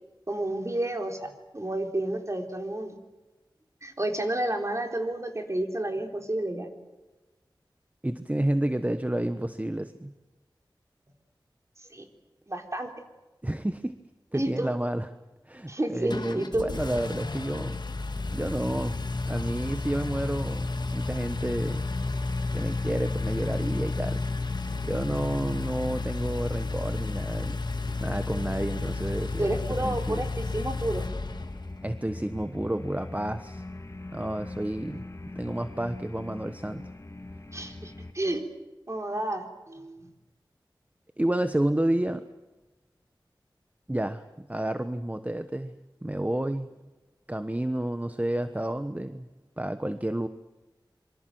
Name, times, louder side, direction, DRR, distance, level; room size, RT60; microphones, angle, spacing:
voice 1, 0.3-3.0 3.8-6.7 11.8-12.1 12.5-12.9 14.3-14.7 15.7-16.7 29.4-31.1 37.5-38.4 38.9-40.1, right 1 dB, 35° right, 4 dB, 3.9 m, -30 dB
voice 2, 8.0-10.1 13.4-14.0 14.3-15.1 15.5-17.8 18.3-19.0 19.3-21.9 22.5-24.2 24.8-27.6 28.0-29.5 29.8-30.2 31.8-33.6 34.1-35.0 35.3-36.8 41.2-42.2 43.9-45.8 46.0-46.7 47.3-49.3 49.6-50.3, right 1 dB, 20° right, 10 dB, 1.1 m, -30 dB
Engine, 16.1-31.8, left 3 dB, 60° left, 1.9 m, -32 dB
sound 1, 18.1-38.1, left 2 dB, 40° left, 2.5 m, -42 dB
26.5 x 24.0 x 7.8 m, 1.1 s
wide cardioid pair, 60°, 8 cm